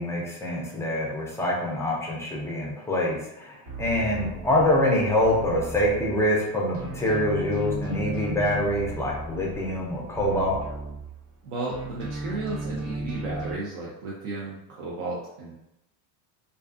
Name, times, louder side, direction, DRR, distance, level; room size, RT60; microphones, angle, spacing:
voice 1, 0.0-10.6, left 1 dB, 5° left, -3 dB, 0.3 m, -25 dB
sound 1, 3.7-6.4 6.7-11.4 11.7-13.5, right 2 dB, 30° right, 0.7 m, -36 dB
voice 2, 11.4-15.5, right 3 dB, 70° right, -5 dB, 0.7 m, -34 dB
2.5 x 2.3 x 2.3 m, 0.86 s
supercardioid pair, 105°, 47 cm